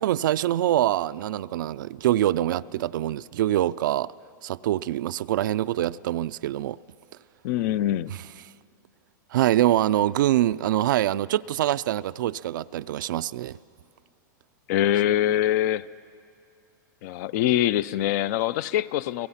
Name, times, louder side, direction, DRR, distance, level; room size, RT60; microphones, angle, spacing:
voice 1, 0.0-4.1 4.4-6.8 9.3-13.6, right 13 dB, 75° right, 0.4 m, -24 dB
voice 2, 7.4-8.1 14.7-15.9 17.0-19.3, left 12 dB, 55° left, 0.5 m, -24 dB
29.5 x 17.5 x 5.7 m
hypercardioid pair, 130°, 10 cm